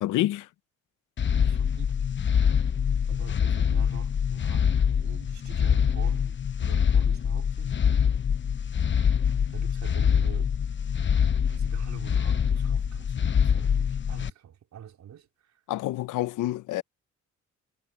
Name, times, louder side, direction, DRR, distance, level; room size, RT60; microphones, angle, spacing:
voice 1, 0.0-0.5 15.7-16.8, left 15 dB, 85° left, 0.9 m, -28 dB
sound 1, 1.2-14.3, left 7 dB, 40° left, 0.9 m, -25 dB
voice 2, 1.3-2.0 3.1-7.8 8.9-10.5 11.5-15.6, right 9 dB, 65° right, 3.8 m, -45 dB
cardioid pair, 90°, 30 cm